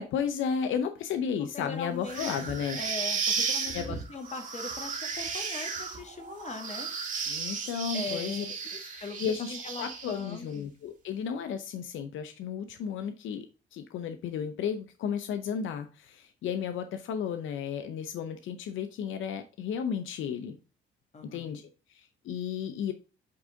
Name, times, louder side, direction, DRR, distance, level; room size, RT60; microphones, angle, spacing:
voice 1, 0.0-2.8 3.7-4.0 7.3-8.5 9.2-13.5 13.7-20.6 21.2-22.9, left 7 dB, 80° left, 8 dB, 0.7 m, -33 dB
voice 2, 1.4-2.3 2.6-6.9 7.9-9.2 9.5-10.5 21.1-21.5, left 4 dB, 35° left, 5 dB, 1.8 m, -40 dB
sound 1, 2.1-10.4, right 5 dB, 40° right, 2.4 m, -34 dB
8.7 x 3.8 x 3.6 m, 0.33 s
cardioid pair, 90°, 20 cm